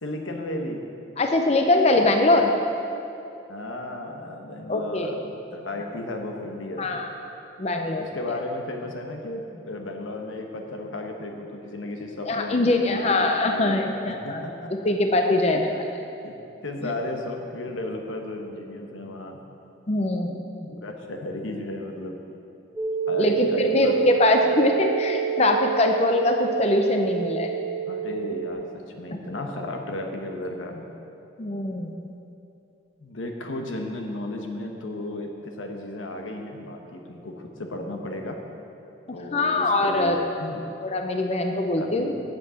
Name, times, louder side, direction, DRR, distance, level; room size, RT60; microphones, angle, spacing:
voice 1, 0.0-0.8 3.5-7.0 8.0-13.9 14.2-14.7 16.2-16.3 16.6-19.4 20.6-22.2 23.1-24.5 27.9-30.9 33.0-38.4 39.1-40.6 41.8-42.1, left 1 dB, 90° left, 3 dB, 1.1 m, -34 dB
voice 2, 1.2-2.5 4.7-5.1 6.8-7.1 7.6-8.4 12.3-14.4 14.8-15.7 16.8-16.9 19.9-20.4 23.2-27.5 31.4-32.1 39.3-40.2 40.8-42.1, left 2 dB, 35° left, 4 dB, 0.5 m, -22 dB
sound 1, 22.8-28.5, right 9 dB, 5° right, 1.0 m, -27 dB
8.4 x 7.5 x 7.6 m, 2.8 s
head